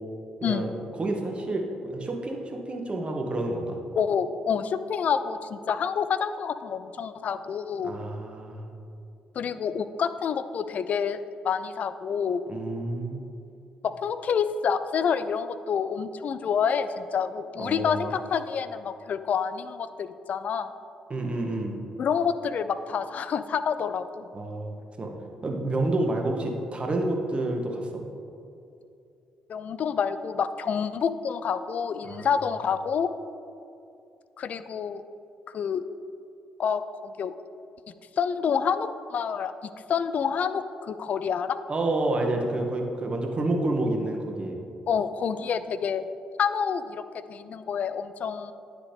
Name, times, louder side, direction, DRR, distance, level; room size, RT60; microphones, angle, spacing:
voice 1, 0.4-0.7 1.0-3.8 7.8-8.7 12.5-13.2 17.6-18.1 21.1-21.8 24.3-25.1 25.4-28.0 32.0-32.3 41.7-44.6, right 2 dB, 35° right, 2 dB, 1.1 m, -29 dB
voice 2, 4.0-7.9 9.4-12.4 13.8-20.8 22.0-24.3 29.5-33.1 34.4-35.0 35.5-35.8 36.6-37.3 38.2-39.5 39.9-41.6 44.9-46.0 46.4-47.0 47.3-48.5, left 7 dB, 50° left, 12 dB, 0.3 m, -28 dB
9.9 x 5.0 x 3.4 m, 2.6 s
figure-of-eight pair, 40°, 3 cm